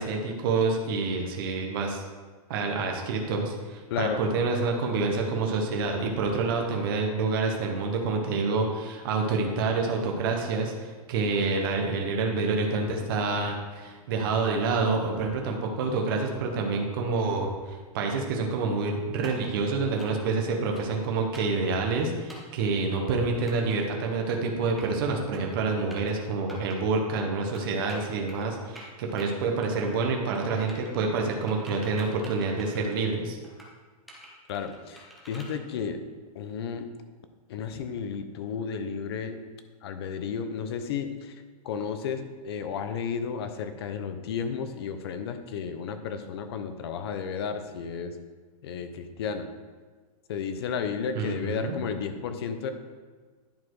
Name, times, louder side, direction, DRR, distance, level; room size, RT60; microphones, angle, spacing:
voice 1, 0.0-2.0 2.5-33.4 51.1-51.7, right 4 dB, 35° right, 2 dB, 1.0 m, -27 dB
sound 1, 19.2-19.5 20.0-20.3 20.7-21.0 21.3-21.6 22.3-22.6 23.5-23.8 24.5-25.1 25.3-25.6 25.9-26.1 26.5-26.8 27.5-28.5 28.8-29.3 29.6-30.1 30.3-31.0 31.5-33.0 33.4-33.7 34.1-35.5, right 1 dB, ahead, 0.6 m, -47 dB
voice 2, 34.5-36.0 36.3-36.9 37.5-39.4 39.8-41.3 41.6-48.2 48.6-49.5 50.3-52.7, left 6 dB, 40° left, 9 dB, 0.7 m, -33 dB
10.5 x 4.2 x 4.7 m, 1.4 s
supercardioid pair, 180°, 19 cm